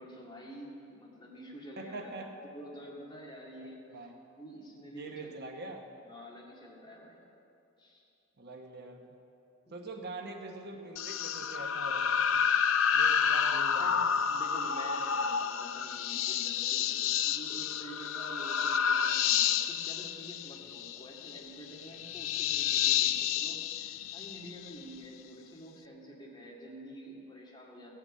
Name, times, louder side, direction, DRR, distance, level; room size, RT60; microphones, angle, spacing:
voice 1, 0.0-3.9 4.4-5.5 6.0-7.2 7.8-8.0 9.7-9.8 11.5-11.6 13.8-27.9, equal, 25° left, -4 dB, 2.3 m, -48 dB
voice 2, 1.8-2.3 3.8-4.1 4.9-5.8 8.4-9.0 9.7-12.5 12.9-14.0, right 2 dB, 55° right, 3 dB, 1.0 m, -43 dB
sound 1, 11.0-24.8, left 8 dB, 75° left, 0.4 m, -30 dB
16.5 x 5.9 x 8.5 m, 2.7 s
head